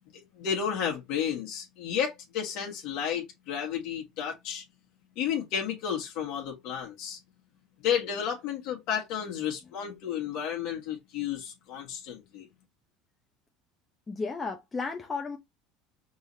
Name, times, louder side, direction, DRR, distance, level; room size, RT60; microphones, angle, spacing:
voice 1, 0.1-4.6 5.2-7.2 7.8-12.5, left 8 dB, 65° left, 1.5 m, -32 dB
voice 2, 14.1-15.4, left 4 dB, 20° left, 0.8 m, -33 dB
5.4 x 3.2 x 2.7 m
supercardioid pair, 120°, 0 cm